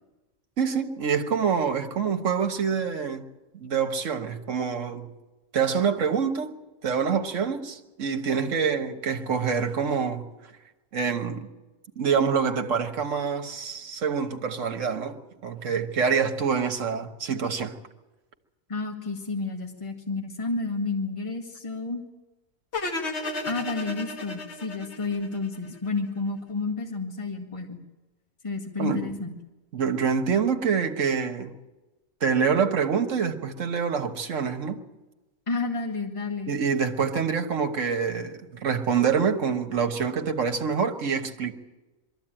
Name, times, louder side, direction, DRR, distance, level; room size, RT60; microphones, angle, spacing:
voice 1, 0.6-3.2 3.5-5.1 5.5-6.5 6.8-10.3 10.9-11.5 12.0-17.7 28.8-29.1 29.7-31.5 32.2-34.8 36.5-41.5, right 6 dB, 65° right, 1.6 m, -26 dB
voice 2, 18.7-22.0 23.4-27.8 28.4-29.3 35.5-36.6, left 3 dB, 25° left, 2.0 m, -31 dB
sound 1, 22.7-25.9, left 2 dB, 55° left, 2.0 m, -33 dB
22.5 x 14.0 x 8.9 m
omnidirectional pair, 1.4 m